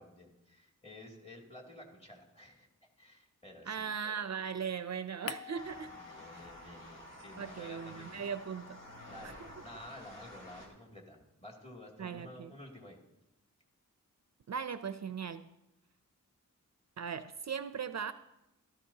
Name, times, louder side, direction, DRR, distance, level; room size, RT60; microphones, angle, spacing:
voice 1, 0.0-2.7 3.0-3.9 6.0-8.3 9.1-13.0, left 1 dB, 20° left, -1 dB, 2.5 m, -52 dB
voice 2, 3.7-6.0 6.3-6.5 7.4-8.8 9.2-9.5 12.0-12.5 14.5-15.5 17.0-18.1, right 7 dB, 55° right, 11 dB, 0.5 m, -39 dB
sound 1, 5.3-7.0 7.3-9.7, left 6 dB, 50° left, 0.5 m, -50 dB
sound 2, 5.5-10.7, left 1 dB, 75° left, 2.8 m, -51 dB
15.5 x 13.5 x 2.8 m, 0.93 s
wide cardioid pair, 90°, 32 cm